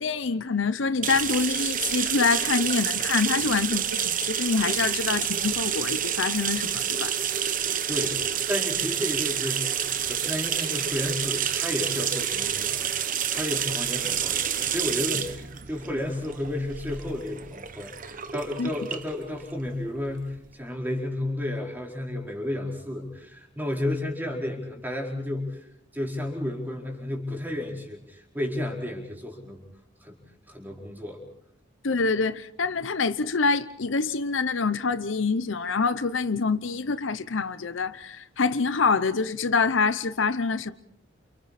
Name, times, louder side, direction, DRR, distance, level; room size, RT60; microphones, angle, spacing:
voice 1, 0.0-7.1 18.6-18.7 31.8-40.7, left 4 dB, 70° left, 0.8 m, -26 dB
sound 1, 1.0-20.5, right 9 dB, 45° right, 1.1 m, -29 dB
voice 2, 7.9-25.7 25.9-29.6 30.0-30.2 30.5-31.2, left 1 dB, 10° right, 4.7 m, -32 dB
29.5 x 29.0 x 4.3 m
head